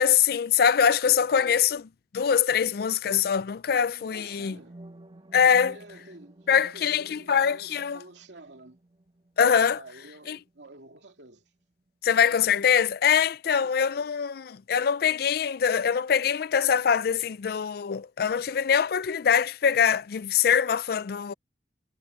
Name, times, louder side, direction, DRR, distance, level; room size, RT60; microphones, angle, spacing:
voice 1, 0.0-1.8 2.1-4.5 5.3-5.7 6.5-8.0 9.4-9.8 10.3-10.4 12.0-21.3, left 7 dB, 60° left, 0.4 m, -23 dB
sound 1, 3.9-11.9, right 1 dB, 30° right, 2.0 m, -53 dB
voice 2, 4.1-4.8 5.4-8.8 9.7-11.4 13.5-14.2, right 2 dB, 85° right, 2.7 m, -49 dB
head